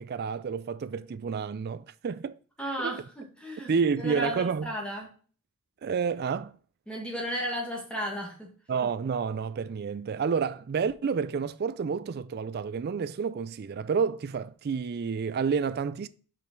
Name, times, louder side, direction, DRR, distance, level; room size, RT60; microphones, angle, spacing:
voice 1, 0.0-2.4 2.8-3.0 3.7-4.7 5.8-6.6 8.7-16.1, right 6 dB, 45° right, 0.3 m, -29 dB
voice 2, 2.6-5.1 6.9-8.5, equal, 5° left, 1.4 m, -34 dB
5.6 x 5.0 x 4.4 m
head